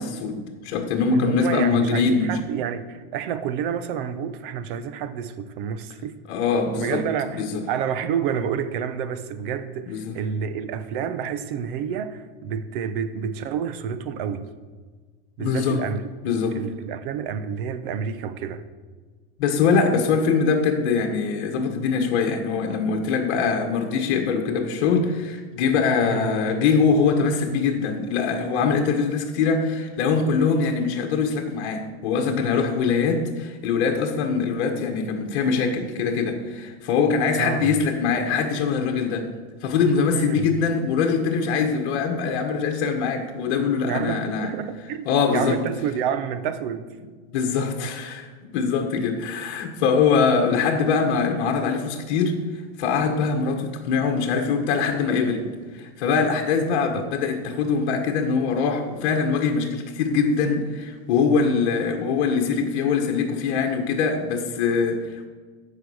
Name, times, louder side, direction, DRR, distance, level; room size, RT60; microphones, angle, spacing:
voice 1, 0.0-2.3 6.3-7.0 7.3-7.6 9.9-10.1 15.4-15.8 16.2-16.6 19.4-39.3 39.6-44.5 45.0-45.6 47.3-52.4 52.8-55.5 55.7-65.3, left 5 dB, 50° left, 1.6 m, -23 dB
voice 2, 1.1-6.2 6.8-14.5 15.4-18.6 26.0-26.4 37.4-37.8 40.1-40.6 43.8-45.0 45.3-46.9 57.0-57.1, right 8 dB, 50° right, 0.9 m, -29 dB
14.5 x 5.5 x 6.4 m
supercardioid pair, 160°, 33 cm